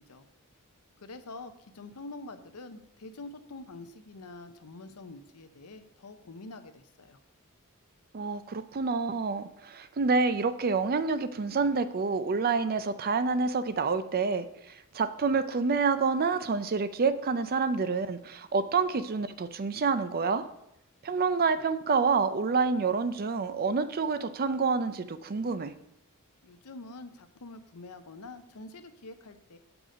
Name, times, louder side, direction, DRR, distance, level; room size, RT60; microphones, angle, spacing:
voice 1, 1.0-7.2 26.4-29.6, left 2 dB, 90° left, 9 dB, 0.8 m, -46 dB
voice 2, 8.1-20.5 21.0-25.7, right 4 dB, 45° right, 12 dB, 0.5 m, -28 dB
6.8 x 6.1 x 5.0 m, 0.82 s
head